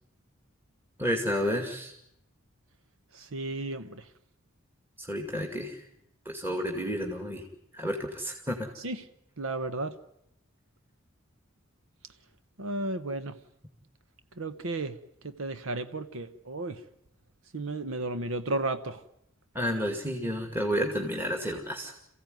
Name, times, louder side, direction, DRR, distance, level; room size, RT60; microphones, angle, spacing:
voice 1, 1.0-1.9 5.1-5.8 6.3-7.4 7.7-8.6 19.5-21.9, equal, 10° right, 3 dB, 2.3 m, -30 dB
voice 2, 3.1-4.0 8.8-9.0 9.4-9.9 12.6-13.4 14.4-15.0 15.2-16.8 17.5-19.0, right 2 dB, 75° right, 11 dB, 1.1 m, -33 dB
28.0 x 15.5 x 9.4 m, 0.79 s
head